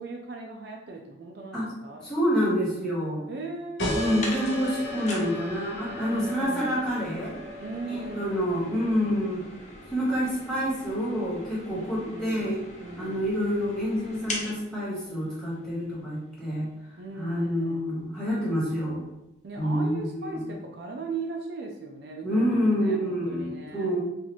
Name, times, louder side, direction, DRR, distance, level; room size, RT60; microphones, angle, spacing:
voice 1, 0.0-2.1 3.3-4.3 6.1-6.9 7.6-9.3 11.7-13.2 17.0-17.8 19.4-23.9, right 3 dB, 60° right, 1 dB, 0.4 m, -39 dB
voice 2, 2.0-3.2 3.9-7.4 7.8-9.4 9.9-12.6 13.0-16.7 17.1-19.0 19.6-20.5 22.2-24.0, equal, 5° left, -7 dB, 1.2 m, -27 dB
sound 1, 3.8-9.0, left 1 dB, 70° left, 0.9 m, -35 dB
sound 2, 3.9-16.1 16.4-16.5 17.4-17.5 17.7-17.8 18.4-18.5 18.8-19.0, left 2 dB, 40° left, 0.6 m, -42 dB
4.0 x 2.5 x 3.0 m, 0.89 s
head